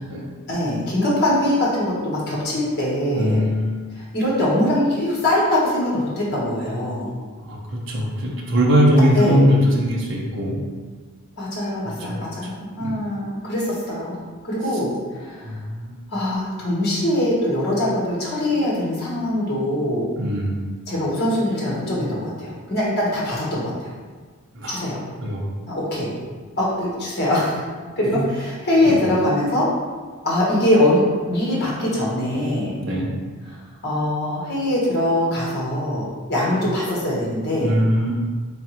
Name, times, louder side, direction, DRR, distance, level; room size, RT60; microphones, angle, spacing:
voice 1, 0.5-3.4 4.0-7.1 9.1-9.5 11.4-14.9 15.2-15.5 16.1-20.1 20.9-23.9 24.7-25.0 25.7-26.1 26.6-27.7 28.0-29.7 30.2-32.7 33.8-37.7, left 1 dB, 45° left, -6 dB, 1.2 m, -22 dB
voice 2, 3.1-3.8 7.5-10.6 12.1-12.3 12.8-13.0 15.4-16.0 20.2-20.6 24.5-24.8 25.2-25.4 28.0-28.2 28.8-29.1 32.8-33.1 37.6-38.1, equal, 55° right, -3 dB, 0.8 m, -21 dB
3.7 x 3.6 x 3.0 m, 1.5 s
head